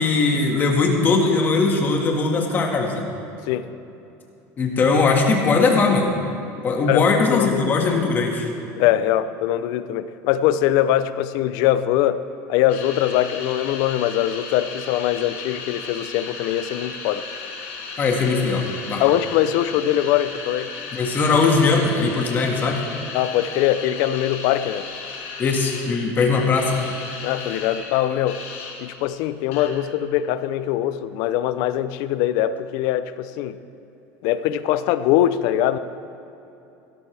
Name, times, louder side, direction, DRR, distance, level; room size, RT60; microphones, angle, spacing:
voice 1, 0.0-3.1 4.6-6.1 6.6-8.5 18.0-19.0 20.9-22.8 25.4-26.8, left 4 dB, 30° left, 1 dB, 1.8 m, -20 dB
voice 2, 6.9-8.0 8.8-12.2 12.5-17.2 19.0-20.7 23.1-24.8 27.2-28.4 28.8-33.6 34.2-35.8, left 12 dB, 65° left, 13 dB, 0.6 m, -22 dB
sound 1, 12.7-29.0 29.5-29.7, left 4 dB, 80° left, 2.6 m, -35 dB
16.5 x 13.0 x 3.4 m, 2.9 s
cardioid pair, 140°, 7 cm